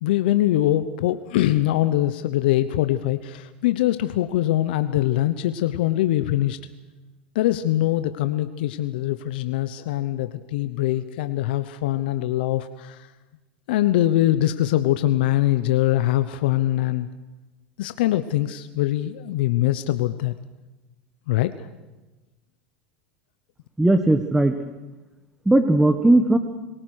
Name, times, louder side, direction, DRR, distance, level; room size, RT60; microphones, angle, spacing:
voice 1, 0.0-6.6 7.3-13.1 13.7-17.1 17.8-20.3 21.3-21.7, left 14 dB, 75° left, 11 dB, 0.9 m, -23 dB
voice 2, 23.8-24.5 25.4-26.4, right 1 dB, 5° right, 8 dB, 1.6 m, -17 dB
27.0 x 18.0 x 6.5 m, 1.1 s
hypercardioid pair, 95°, 5 cm